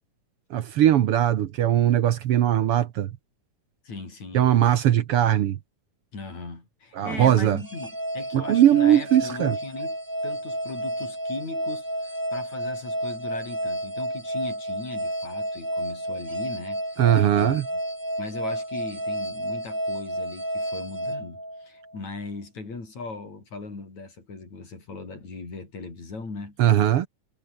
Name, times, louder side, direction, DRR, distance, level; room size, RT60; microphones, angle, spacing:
voice 1, 0.5-3.1 4.3-5.6 7.0-7.6 8.3-9.6 17.0-17.6 26.6-27.1, right 11 dB, 70° right, 1.4 m, -20 dB
voice 2, 3.8-4.7 6.1-10.0 10.2-17.0 17.4-17.8 18.2-26.6, left 3 dB, 55° left, 8.3 m, -39 dB
sound 1, 7.6-22.0, right 1 dB, 5° right, 3.6 m, -31 dB
omnidirectional pair, 3.8 m